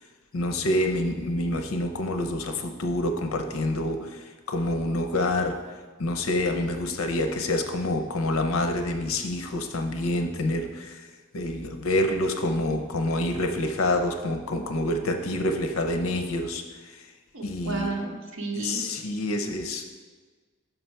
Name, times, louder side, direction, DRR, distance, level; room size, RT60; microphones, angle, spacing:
voice 1, 0.3-5.6 6.0-11.1 11.3-16.6 16.9-17.0 17.4-17.9 18.5-19.9, left 1 dB, 85° left, 5 dB, 0.6 m, -27 dB
voice 2, 17.3-18.8, right 3 dB, 75° right, -1 dB, 0.8 m, -32 dB
5.8 x 5.4 x 4.5 m, 1.4 s
head